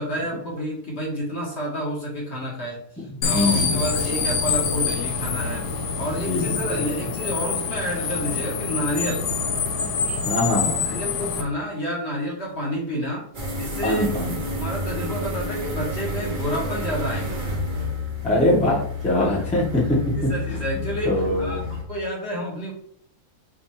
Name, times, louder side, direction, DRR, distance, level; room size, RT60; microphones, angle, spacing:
voice 1, 0.0-9.2 10.1-10.2 10.9-13.3 13.6-14.0 14.5-17.4 20.3-22.7, equal, 45° left, -3 dB, 1.4 m, -29 dB
sound 1, 3.2-11.4, left 5 dB, 85° left, 1.3 m, -26 dB
voice 2, 3.3-3.8 6.2-6.9 10.3-10.8 13.8-14.4 18.2-21.6, left 1 dB, 5° left, -4 dB, 0.9 m, -23 dB
sound 2, 13.3-21.8, left 2 dB, 35° right, 0.9 m, -30 dB
6.3 x 2.6 x 3.1 m, 0.64 s
omnidirectional pair, 1.6 m